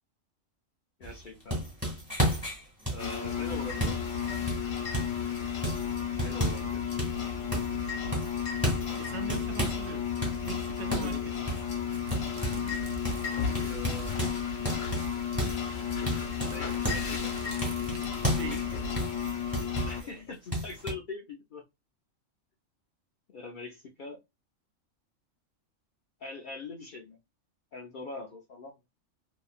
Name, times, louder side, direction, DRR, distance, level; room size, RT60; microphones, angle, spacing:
voice 1, 1.0-1.6 2.9-4.1 6.2-7.0 10.9-11.3 13.6-14.1 16.1-17.3 19.8-21.6 23.3-24.2 26.2-27.2 27.7-28.7, left 3 dB, 60° left, 0.5 m, -42 dB
sound 1, 1.0-5.2 5.6-6.7 7.0-7.8 8.1-9.9 10.2-12.8 13.0-13.3 13.6-17.1 17.6-20.1 20.5-20.9, equal, 5° right, 1.6 m, -33 dB
sound 2, 3.0-20.0, left 7 dB, 80° left, 1.2 m, -33 dB
voice 2, 9.0-10.1 10.4-11.4 18.3-18.8, right 6 dB, 65° right, 0.8 m, -41 dB
sound 3, 11.3-14.3 14.6-14.7 14.9-18.5, right 3 dB, 90° right, 1.1 m, -48 dB
2.8 x 2.5 x 2.3 m
omnidirectional pair, 1.3 m